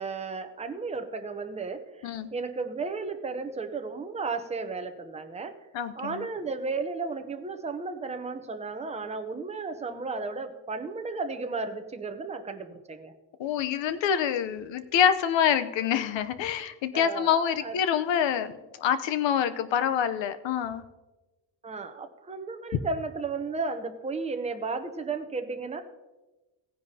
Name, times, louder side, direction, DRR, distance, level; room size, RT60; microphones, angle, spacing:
voice 1, 0.0-5.5 6.0-13.1 16.9-17.8 21.6-25.8, right 4 dB, 15° right, 6 dB, 0.7 m, -34 dB
voice 2, 5.7-6.3 13.4-20.8, left 8 dB, 80° left, 12 dB, 0.8 m, -26 dB
17.0 x 10.0 x 2.8 m, 1.1 s
cardioid pair, 160°, 44 cm